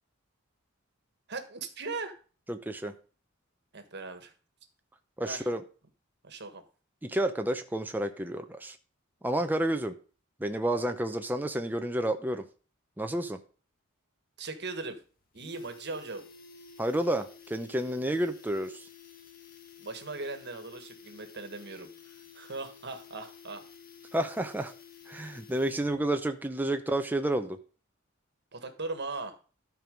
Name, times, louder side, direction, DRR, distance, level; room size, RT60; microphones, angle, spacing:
voice 1, 1.3-2.1 3.7-4.3 5.2-5.5 6.2-6.6 14.4-15.0 15.3-16.3 19.8-23.6 28.5-29.4, right 3 dB, 55° right, 8 dB, 1.5 m, -39 dB
voice 2, 2.5-2.9 5.2-5.6 7.0-8.8 9.2-9.9 10.4-12.4 13.0-13.4 16.8-18.8 24.1-24.7 25.1-27.6, right 1 dB, 10° right, 6 dB, 0.6 m, -30 dB
sound 1, 14.4-14.5 14.8-14.9 15.2-26.0 26.3-26.4, left 7 dB, 45° left, 1.4 m, -52 dB
12.5 x 4.7 x 5.1 m, 0.37 s
head